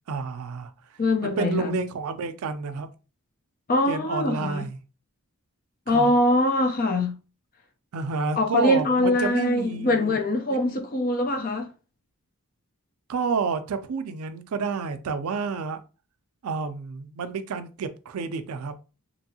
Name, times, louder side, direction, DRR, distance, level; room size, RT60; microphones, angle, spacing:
voice 1, 0.1-0.7 1.2-2.9 3.9-4.8 5.9-6.1 7.9-10.2 10.5-10.8 13.1-15.8 16.4-18.7, right 5 dB, 80° right, 0.4 m, -30 dB
voice 2, 1.0-1.8 3.7-4.6 5.9-7.1 8.4-11.7, left 1 dB, 40° left, 0.5 m, -23 dB
2.9 x 2.6 x 2.7 m
head